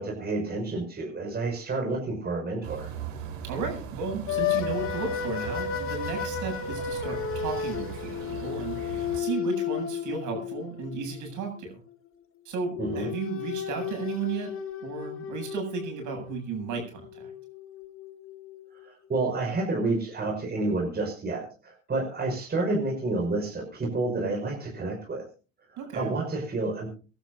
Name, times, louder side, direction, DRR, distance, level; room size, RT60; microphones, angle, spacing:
voice 1, 0.0-2.9 12.8-13.1 18.8-25.2 25.7-26.9, right 2 dB, 25° right, -1 dB, 5.8 m, -29 dB
sound 1, 2.6-9.2, right 7 dB, 75° right, 4.3 m, -39 dB
voice 2, 3.4-11.8 12.4-14.5 14.8-17.3 25.8-26.2, right 5 dB, 50° right, 3 dB, 8.0 m, -34 dB
sound 2, 4.3-11.6 12.7-18.8, left 8 dB, 35° left, 2.1 m, -33 dB
26.0 x 12.0 x 2.7 m, 0.36 s
hypercardioid pair, 85°, 39 cm